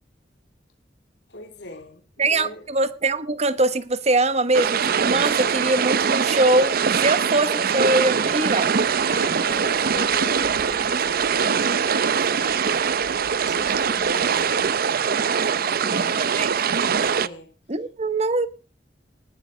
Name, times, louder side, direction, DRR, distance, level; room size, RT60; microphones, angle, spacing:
voice 1, 1.3-2.0 2.3-2.7 9.1-12.8 13.4-15.0 15.3-16.4 17.1-17.5, left 2 dB, 70° left, 3.1 m, -40 dB
voice 2, 2.2-8.7 15.9-16.5 17.7-18.5, right 2 dB, 40° right, 1.1 m, -22 dB
sound 1, 4.5-17.3, right 6 dB, 55° right, 0.6 m, -22 dB
19.5 x 12.0 x 4.0 m
head